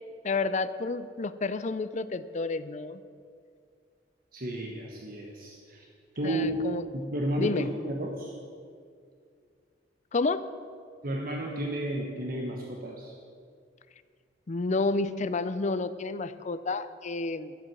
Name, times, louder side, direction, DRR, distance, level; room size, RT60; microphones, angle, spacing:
voice 1, 0.2-3.0 6.2-6.9 7.4-7.7 10.1-10.5 14.5-17.5, left 3 dB, 40° left, 13 dB, 0.5 m, -30 dB
voice 2, 4.3-5.8 6.2-6.7 6.9-8.3 11.0-13.1, right 1 dB, 50° right, 0 dB, 1.2 m, -32 dB
12.5 x 7.7 x 8.9 m, 2.2 s
head